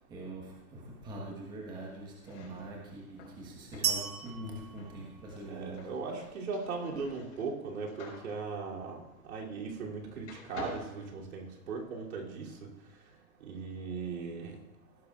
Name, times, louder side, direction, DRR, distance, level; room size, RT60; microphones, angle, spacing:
voice 1, 0.1-5.9 6.9-7.0, right 1 dB, 10° right, -3 dB, 1.2 m, -43 dB
sound 1, 2.1-9.9 10.2-11.9, left 4 dB, 55° left, 4.7 m, -51 dB
sound 2, 3.8-5.8, right 9 dB, 25° right, 0.6 m, -35 dB
voice 2, 5.5-12.7 13.4-14.5, right 4 dB, 70° right, -2 dB, 2.9 m, -38 dB
17.0 x 11.5 x 2.4 m, 0.95 s
hypercardioid pair, 160°, 44 cm